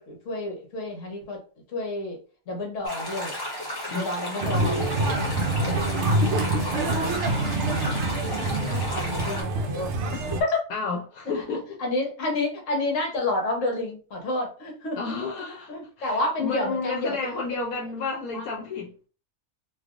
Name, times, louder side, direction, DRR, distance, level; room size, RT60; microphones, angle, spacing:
voice 1, 0.0-1.4 1.7-2.2 2.5-3.3 3.9-5.1 5.5-5.9 6.8-7.5 7.8-7.9 8.3-10.6 11.3-11.4 11.8-15.0 15.7-17.2 18.3-18.4, left 2 dB, 60° left, 1.3 m, -30 dB
sound 1, 2.8-9.4, equal, 20° left, 0.8 m, -34 dB
sound 2, 4.4-10.4, right 2 dB, 65° right, 0.7 m, -26 dB
voice 2, 10.7-11.8 15.0-18.9, left 4 dB, 80° left, 1.1 m, -31 dB
3.2 x 2.7 x 2.4 m
omnidirectional pair, 1.5 m